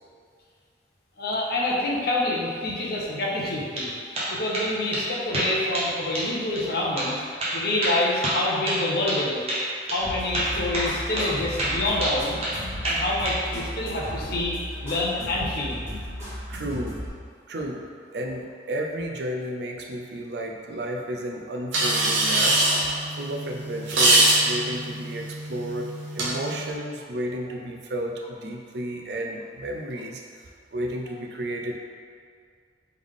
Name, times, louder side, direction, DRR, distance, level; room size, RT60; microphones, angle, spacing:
voice 1, 1.2-7.2 7.5-9.4 9.9-12.4 12.8-14.6 14.8-15.8, left 2 dB, 55° left, -3 dB, 0.7 m, -27 dB
sound 1, 3.5-3.9 4.1-4.7 4.9-5.0 5.3-5.9 6.1-6.3 6.6-6.7 7.0-7.1 7.4-9.2 9.5-9.6 9.9-10.0 10.3-10.9 11.2-11.3 11.6-12.6 12.8-13.4, right 1 dB, 35° right, 0.9 m, -27 dB
sound 2, 10.0-17.1, equal, 15° right, 1.4 m, -35 dB
voice 2, 16.5-17.0 17.5-22.7 23.2-30.2 30.7-31.8, right 1 dB, 60° right, 1 dB, 0.5 m, -32 dB
sound 3, 21.7-26.7, right 1 dB, 85° right, 0.9 m, -23 dB
3.5 x 3.3 x 3.6 m, 2.1 s
head